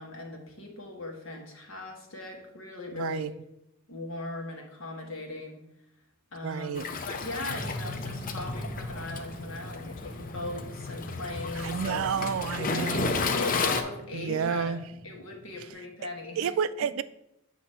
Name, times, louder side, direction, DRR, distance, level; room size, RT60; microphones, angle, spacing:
voice 1, 0.0-3.3 3.9-5.6 6.3-12.0 12.7-14.8 15.0-16.5, left 2 dB, 75° left, 1.3 m, -39 dB
voice 2, 2.9-3.3 6.4-6.9 11.6-13.2 14.1-14.8 16.4-17.0, right 7 dB, 80° right, 0.3 m, -30 dB
Waves surf, 6.8-13.8, left 4 dB, 40° left, 0.5 m, -33 dB
sound 1, 7.5-15.7, left 1 dB, 10° left, 1.5 m, -42 dB
7.9 x 2.8 x 5.5 m
head